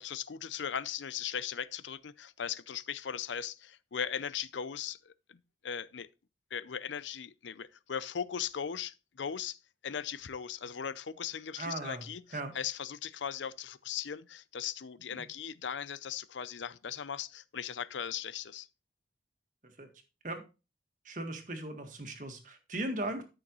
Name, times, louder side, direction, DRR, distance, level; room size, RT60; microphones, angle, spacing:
voice 1, 0.0-6.1 6.5-9.6 9.8-18.7, left 8 dB, 85° left, 0.6 m, -38 dB
voice 2, 11.6-12.0 12.3-12.5 15.1-15.2 19.6-19.9 20.2-20.4 21.0-23.2, right 1 dB, 45° right, 1.7 m, -38 dB
13.0 x 6.3 x 3.1 m
head